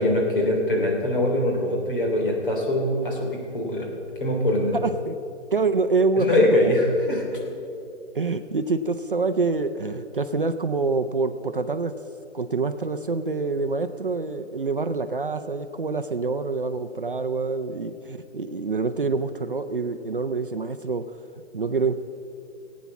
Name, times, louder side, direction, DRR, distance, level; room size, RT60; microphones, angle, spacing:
voice 1, 0.0-3.9 4.2-4.8 6.2-7.4, left 1 dB, 45° left, 0 dB, 2.9 m, -23 dB
voice 2, 4.8-5.2 5.5-6.7 8.1-11.9 12.3-21.1 21.5-22.0, right 4 dB, 45° right, 8 dB, 0.5 m, -26 dB
18.5 x 8.3 x 5.9 m, 2.7 s
hypercardioid pair, 175°, 36 cm